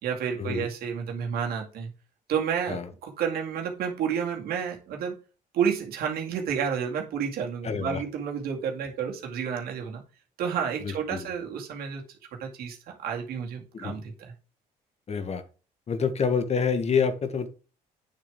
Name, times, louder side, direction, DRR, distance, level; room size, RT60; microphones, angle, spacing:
voice 1, 0.0-1.9 2.3-5.2 5.5-10.0 10.4-12.0 12.3-14.3, right 7 dB, 75° right, 1 dB, 2.3 m, -30 dB
voice 2, 7.6-8.0 10.8-11.3 13.7-14.0 15.1-15.4 15.9-17.5, left 6 dB, 45° left, 10 dB, 1.5 m, -27 dB
9.1 x 6.6 x 3.7 m, 0.34 s
cardioid pair, 85°, 16 cm